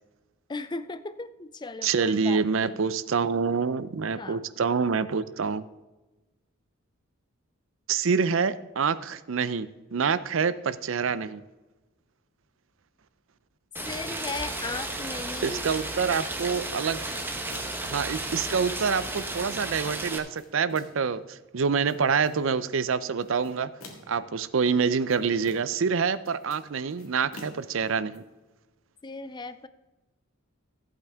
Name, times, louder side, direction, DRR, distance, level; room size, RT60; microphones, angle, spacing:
voice 1, 0.5-2.8 4.2-4.4 13.8-15.6 29.0-29.7, left 3 dB, 20° left, 13 dB, 0.4 m, -37 dB
voice 2, 1.8-5.6 7.9-11.4 15.4-17.0 17.8-23.7 24.1-28.2, right 5 dB, 65° right, 16 dB, 0.5 m, -26 dB
Rain, 13.8-20.2, right 2 dB, 10° right, 1.0 m, -34 dB
sound 1, 17.5-17.9 18.5-19.6 20.1-21.1 21.6-22.5 23.2-24.3 24.8-25.9 26.1-28.2, left 2 dB, 90° left, 2.0 m, -49 dB
14.5 x 8.5 x 3.6 m, 1.1 s
head